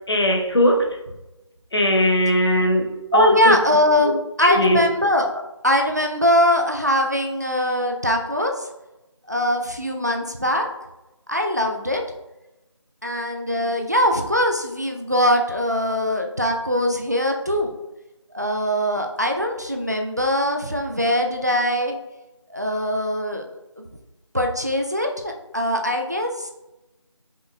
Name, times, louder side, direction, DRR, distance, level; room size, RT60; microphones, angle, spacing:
voice 1, 0.1-0.9 1.7-3.5 4.0-4.1 4.4-4.8, equal, 55° left, 1 dB, 0.9 m, -19 dB
voice 2, 3.1-8.7 9.3-10.7 11.3-12.0 13.0-17.7 18.3-22.0 22.5-23.5 23.8-23.9 24.3-26.5, left 1 dB, 35° right, 3 dB, 0.3 m, -21 dB
5.1 x 4.0 x 2.3 m, 0.97 s
figure-of-eight pair, 170°, 16 cm